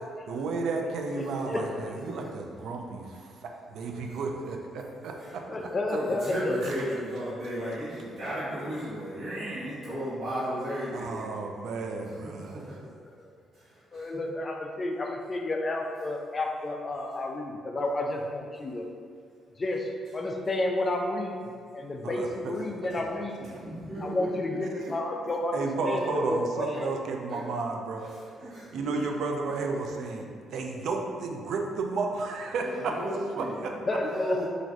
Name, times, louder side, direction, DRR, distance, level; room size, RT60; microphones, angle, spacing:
voice 1, 0.3-5.4 5.9-6.0 6.6-6.7 10.9-12.6 22.0-22.6 25.5-28.1 28.4-30.2 30.5-33.7, right 3 dB, 75° right, 2 dB, 0.3 m, -32 dB
voice 2, 1.2-1.6 5.5-6.7 13.1-13.3 13.9-18.9 19.6-23.5 24.0-25.6 25.8-26.9 33.9-34.4, left 2 dB, 35° left, 2 dB, 0.3 m, -31 dB
voice 3, 5.2-11.3 12.1-12.7 13.5-14.1 23.6-24.6 27.3-27.4 28.0-28.9 32.6-33.6 34.0-34.4, equal, 55° right, -14 dB, 1.0 m, -35 dB
3.1 x 2.5 x 2.4 m, 2.1 s
cardioid pair, 90°, 0 cm